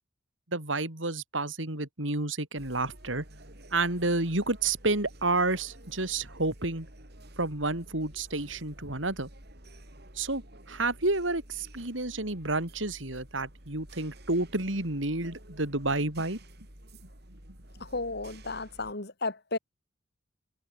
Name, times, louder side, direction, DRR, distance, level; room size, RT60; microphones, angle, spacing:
voice 1, 0.5-3.2 3.7-6.9 7.4-9.3 10.2-10.4 10.7-16.4, right 2 dB, 80° right, 4.8 m, -30 dB
sound 1, 2.6-18.9, right 1 dB, 55° right, 7.6 m, -51 dB
voice 2, 17.8-19.6, left 3 dB, 55° left, 3.1 m, -34 dB
head